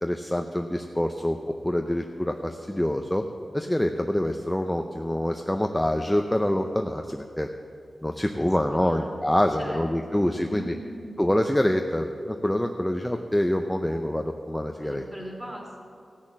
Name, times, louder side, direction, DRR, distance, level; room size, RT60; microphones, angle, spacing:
voice 1, 0.0-1.4 1.6-3.2 3.5-7.5 8.0-10.7 11.2-15.0, left 1 dB, 10° left, 4 dB, 0.5 m, -26 dB
voice 2, 8.3-9.1 9.6-9.8 10.1-11.1 14.8-15.8, equal, 10° right, -2 dB, 2.8 m, -40 dB
15.5 x 6.6 x 7.3 m, 2.5 s
wide cardioid pair, 105°, 0 cm